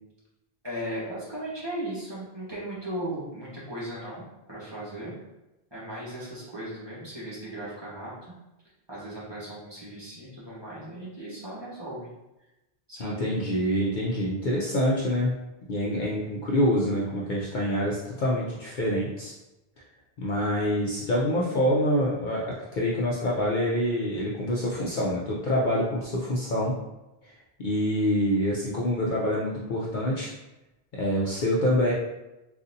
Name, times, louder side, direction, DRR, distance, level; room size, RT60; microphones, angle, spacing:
voice 1, 0.6-5.1 5.7-8.3 8.9-12.1 12.9-13.3 15.9-16.3, right 1 dB, 25° right, -9 dB, 1.1 m, -37 dB
voice 2, 13.0-15.4 15.7-19.3 20.2-26.7 27.6-30.3 31.0-31.9, equal, 55° left, -5 dB, 0.6 m, -26 dB
3.8 x 2.4 x 2.6 m, 0.98 s
omnidirectional pair, 1.1 m